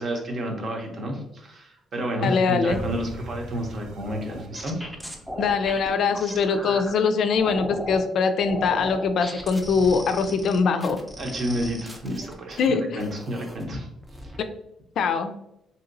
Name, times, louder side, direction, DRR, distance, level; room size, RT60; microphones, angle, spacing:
voice 1, 0.0-4.9 11.2-13.9, right 1 dB, 50° right, 2 dB, 0.8 m, -30 dB
voice 2, 2.2-2.8 5.4-11.0 12.6-13.1 15.0-15.3, left 5 dB, 70° left, 8 dB, 0.3 m, -22 dB
sound 1, 2.7-7.7 8.2-8.3, equal, 90° right, 0.5 m, -41 dB
sound 2, 4.0-6.9 7.4-8.0 8.4-12.7 13.0-13.7 14.0-14.4, equal, 10° right, 0.6 m, -37 dB
2.8 x 2.7 x 2.6 m, 0.82 s
cardioid pair, 90°, 0 cm